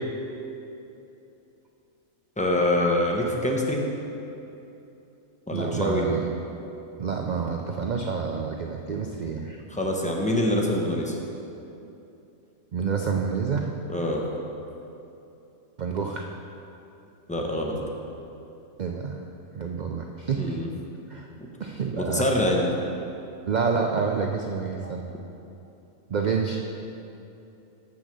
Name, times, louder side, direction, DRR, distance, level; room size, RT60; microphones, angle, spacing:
voice 1, 2.4-3.8 5.5-6.0 9.7-11.2 13.9-14.2 17.3-17.8 20.4-20.7 22.0-22.6, left 1 dB, 5° left, -1 dB, 0.7 m, -25 dB
voice 2, 5.5-6.3 7.0-9.6 12.7-13.7 15.8-16.3 18.8-19.2 19.5-20.6 21.1-21.3 21.6-22.3 23.4-25.0 26.1-26.6, right 5 dB, 90° right, 2 dB, 0.4 m, -28 dB
7.3 x 6.2 x 6.7 m, 2.8 s
omnidirectional pair, 1.4 m